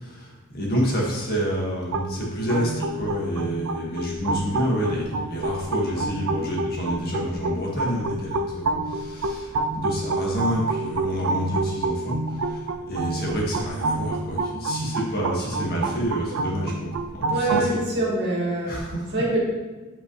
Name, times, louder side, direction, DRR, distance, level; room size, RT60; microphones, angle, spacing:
voice 1, 0.0-12.6 12.9-17.8 18.7-19.1, equal, 50° left, -3 dB, 1.8 m, -28 dB
sound 1, 1.9-17.7, right 2 dB, 85° right, 0.5 m, -28 dB
voice 2, 17.3-18.8 19.1-19.4, right 2 dB, 55° right, -5 dB, 2.1 m, -24 dB
8.2 x 5.6 x 3.2 m, 1.3 s
head